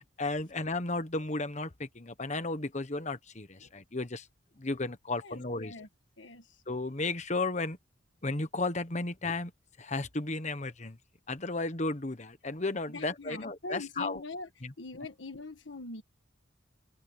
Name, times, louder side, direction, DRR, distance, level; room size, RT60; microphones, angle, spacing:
voice 1, 0.2-4.3 4.6-5.7 6.7-7.8 8.2-9.5 9.8-11.0 11.3-14.2 14.6-14.7, left 2 dB, 35° left, 1.3 m, -34 dB
voice 2, 5.2-5.9 6.2-6.6 12.9-14.5 14.8-16.0, left 2 dB, 75° left, 1.5 m, -42 dB
open air
head